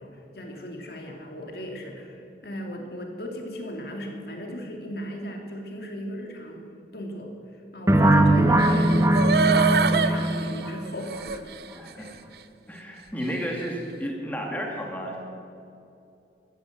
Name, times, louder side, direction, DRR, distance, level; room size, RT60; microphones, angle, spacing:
voice 1, 0.0-11.4 12.0-12.1, equal, 60° left, 2 dB, 2.5 m, -37 dB
sound 1, 7.9-10.7, right 1 dB, 15° right, 0.9 m, -20 dB
sound 2, 8.6-11.7 12.1-12.2, right 5 dB, 60° right, 0.7 m, -25 dB
voice 2, 11.7-12.2 12.7-15.2, equal, 10° left, 0 dB, 2.4 m, -32 dB
14.0 x 12.5 x 7.9 m, 2.6 s
head